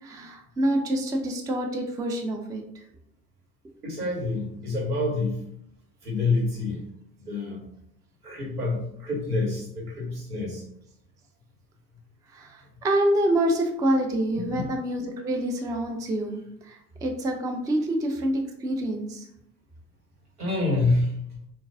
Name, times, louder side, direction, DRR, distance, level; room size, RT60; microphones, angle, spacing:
voice 1, 0.0-2.6 12.3-19.3, right 1 dB, 10° right, 3 dB, 0.3 m, -27 dB
voice 2, 3.8-5.4 6.0-6.8 7.2-7.7 8.2-10.6 14.3-14.5 20.4-21.1, left 2 dB, 80° right, -3 dB, 1.3 m, -27 dB
3.8 x 2.4 x 3.5 m, 0.74 s
figure-of-eight pair, 60°, 45 cm